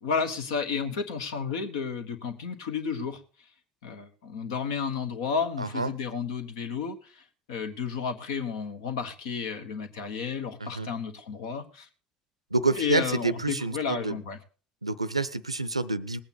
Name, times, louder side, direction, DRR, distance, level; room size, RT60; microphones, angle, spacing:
voice 1, 0.0-3.2 3.8-11.9 12.7-14.4, left 6 dB, 65° left, 8 dB, 1.5 m, -32 dB
voice 2, 5.6-5.9 10.6-10.9 12.5-14.2 14.8-16.2, right 3 dB, 85° right, 17 dB, 0.6 m, -28 dB
19.0 x 8.7 x 4.2 m, 0.38 s
figure-of-eight pair, 60°, 3 cm